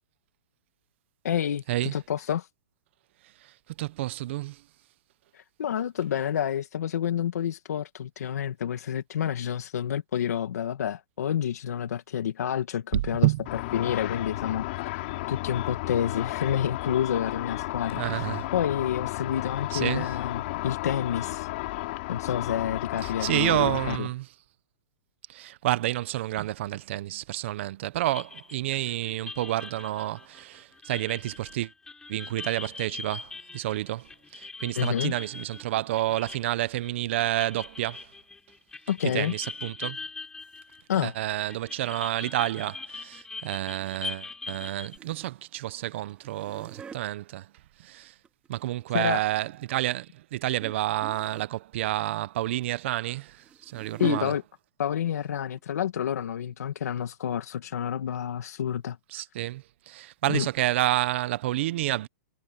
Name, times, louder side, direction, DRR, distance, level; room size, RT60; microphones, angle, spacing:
voice 1, 1.2-2.5 5.3-21.5 22.1-24.1 34.7-35.1 38.9-39.3 40.9-41.1 48.9-49.2 54.0-54.4 54.8-59.2 60.3-60.5, left 9 dB, 85° left, 1.6 m, -29 dB
voice 2, 3.4-4.6 12.9-13.4 17.9-18.5 19.7-20.1 23.0-24.3 25.3-31.7 32.1-38.1 39.1-40.0 41.0-47.5 47.8-48.1 48.5-54.3 59.1-62.1, right 15 dB, 50° right, 0.8 m, -29 dB
Car / Traffic noise roadway noise / Engine, 13.5-24.0, left 20 dB, 45° left, 3.5 m, -33 dB
sound 1, 28.0-41.2 41.5-45.0, left 4 dB, 5° left, 6.7 m, -42 dB
sound 2, 40.4-40.6 43.5-44.0 44.3-45.5 46.1-47.0 48.0-48.9 49.3-49.6 50.6-50.8 51.0-51.5 53.0-54.3 55.1-55.3 55.6-55.7 56.2-56.3, right 6 dB, 10° right, 3.1 m, -42 dB
hypercardioid pair, 160°, 8 cm